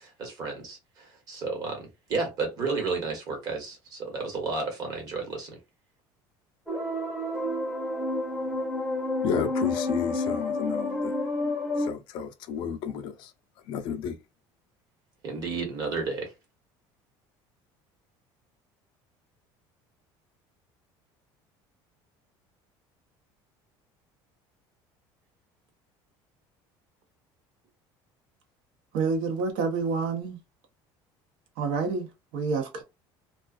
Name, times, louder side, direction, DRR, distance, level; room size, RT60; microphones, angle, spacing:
voice 1, 0.0-5.6 15.2-16.3, right 4 dB, 40° right, 1.1 m, -32 dB
sound 1, 6.7-11.9, left 2 dB, ahead, 0.7 m, -29 dB
voice 2, 9.2-11.2 11.8-13.3 13.7-14.2, left 7 dB, 50° left, 0.4 m, -32 dB
voice 3, 28.9-30.4 31.6-32.8, right 4 dB, 65° right, 0.8 m, -28 dB
2.3 x 2.3 x 2.3 m
cardioid pair, 170°, 10 cm